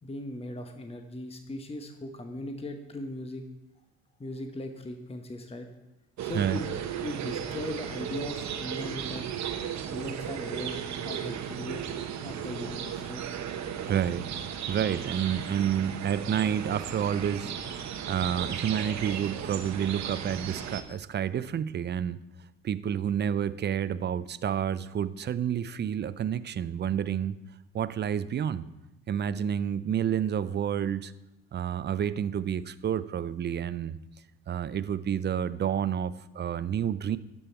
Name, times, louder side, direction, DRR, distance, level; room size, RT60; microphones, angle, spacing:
voice 1, 0.0-3.4 4.2-5.7 6.2-6.6 7.0-9.2 9.8-11.9 12.2-13.2, left 1 dB, 20° left, 5 dB, 1.0 m, -38 dB
sound 1, 6.2-20.8, right 8 dB, 60° right, 1.0 m, -35 dB
voice 2, 13.9-14.2 14.7-22.2 22.6-27.4 27.7-28.7 29.1-31.1 31.5-34.0 34.5-37.2, right 9 dB, 35° right, 15 dB, 0.5 m, -29 dB
12.5 x 5.5 x 4.4 m, 0.93 s
supercardioid pair, 70°, 31 cm